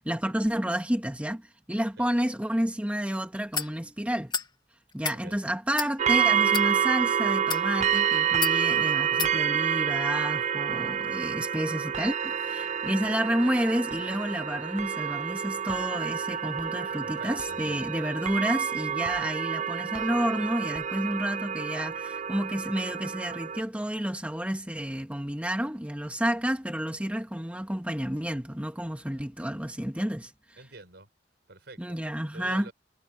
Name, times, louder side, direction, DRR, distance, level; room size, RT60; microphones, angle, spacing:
voice 1, 0.0-4.3 4.9-30.6 31.8-32.7, equal, 10° right, 1.9 m, -30 dB
sound 1, 3.5-3.7 4.3-4.5 4.9-5.2 5.7-5.9 6.5-6.7 7.4-7.7 8.4-8.6 9.2-9.3, left 6 dB, 25° left, 1.5 m, -30 dB
sound 2, 6.0-23.6, right 8 dB, 40° right, 0.5 m, -28 dB
voice 2, 17.0-17.9 30.6-31.1 31.5-32.0 32.3-32.7, right 2 dB, 65° right, 5.3 m, -46 dB
head